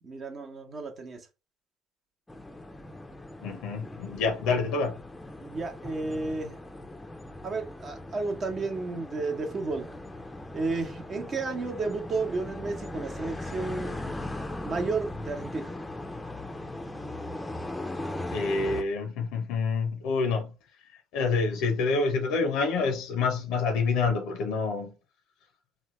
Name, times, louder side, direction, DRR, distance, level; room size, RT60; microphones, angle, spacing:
voice 1, 0.0-1.3 5.4-6.6 7.4-9.9 10.5-14.0 14.6-15.7, right 3 dB, 45° right, 0.9 m, -32 dB
sound 1, 2.3-18.8, left 1 dB, 10° left, 0.5 m, -39 dB
voice 2, 3.4-5.0 18.3-20.5 21.1-24.9, left 4 dB, 75° left, 0.5 m, -27 dB
3.2 x 2.2 x 3.0 m
hypercardioid pair, 70°, 0 cm